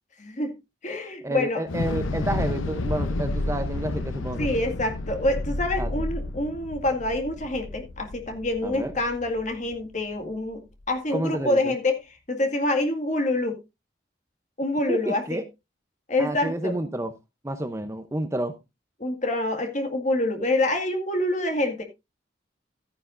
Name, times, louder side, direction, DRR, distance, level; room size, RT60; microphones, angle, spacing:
voice 1, 0.2-0.5 0.8-1.6 4.4-10.6 10.9-13.6 14.6-15.4 16.1-16.8 19.0-21.8, left 1 dB, 40° left, 2.0 m, -26 dB
voice 2, 1.2-4.5 5.8-5.9 8.6-8.9 11.1-11.7 14.9-15.4 16.2-17.1 17.4-18.5, right 1 dB, 15° right, 0.7 m, -30 dB
Thunder / Explosion, 1.7-9.9, left 2 dB, 90° left, 0.7 m, -31 dB
13.5 x 9.9 x 2.6 m
head